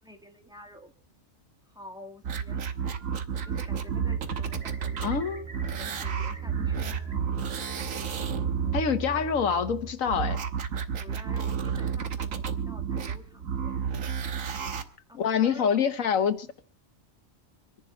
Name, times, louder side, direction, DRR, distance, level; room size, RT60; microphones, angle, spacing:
voice 1, 0.0-0.9 1.7-2.7 3.4-5.3 5.8-7.1 10.9-13.8 14.5-16.2, left 1 dB, 5° right, 1.9 m, -49 dB
sound 1, 2.2-5.2 5.5-8.8 10.1-14.8 15.5-15.6, right 7 dB, 85° right, 1.5 m, -31 dB
Bird, 2.6-3.2 3.4-7.1 7.5-8.3, right 2 dB, 65° right, 4.5 m, -51 dB
sound 2, 4.0-9.9, right 5 dB, 25° right, 3.7 m, -40 dB
voice 2, 5.0-5.5 8.7-10.4 15.1-16.5, left 7 dB, 85° left, 1.5 m, -26 dB
25.5 x 10.5 x 4.4 m
omnidirectional pair, 1.4 m